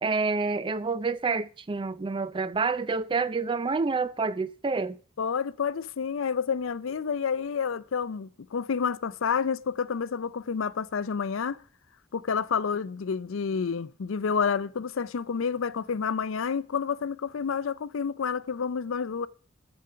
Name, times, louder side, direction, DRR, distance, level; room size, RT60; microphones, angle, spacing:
voice 1, 0.0-5.0, right 4 dB, 25° right, 0.4 m, -28 dB
voice 2, 5.2-11.6 12.1-19.3, left 6 dB, 70° left, 0.5 m, -29 dB
14.5 x 5.1 x 6.7 m
head